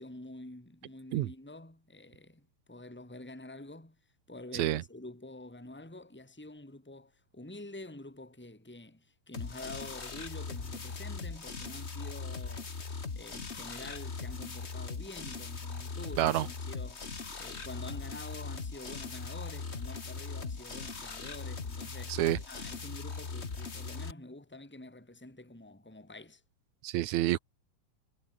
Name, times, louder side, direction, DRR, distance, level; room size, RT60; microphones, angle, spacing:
voice 1, 0.0-4.0 4.3-12.7 13.1-17.1 17.4-22.2 22.5-26.4, left 2 dB, 5° left, 4.2 m, -47 dB
sound 1, 9.3-24.1, left 4 dB, 30° left, 1.3 m, -40 dB
voice 2, 26.8-27.4, right 15 dB, 70° right, 2.0 m, -28 dB
omnidirectional pair, 3.9 m